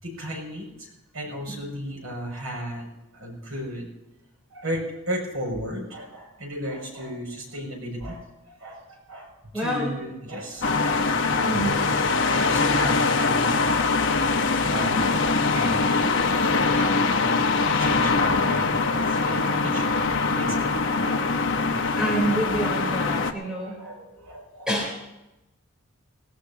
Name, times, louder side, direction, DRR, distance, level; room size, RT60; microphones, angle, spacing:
voice 1, 0.0-2.9 3.1-3.9 4.5-11.6 12.3-13.5 14.7-16.4 16.7-17.4 17.8-19.9 20.3-21.1 22.0-22.1 22.4-22.7 23.0-24.7, equal, 80° right, 0 dB, 6.7 m, -35 dB
voice 2, 9.5-9.9 11.4-11.9 17.7-17.8 22.0-23.8 24.7-25.0, right 1 dB, 5° right, -2 dB, 3.7 m, -27 dB
sound 1, 10.6-23.3, left 4 dB, 60° left, 1.1 m, -23 dB
19.5 x 18.5 x 2.9 m, 0.95 s
head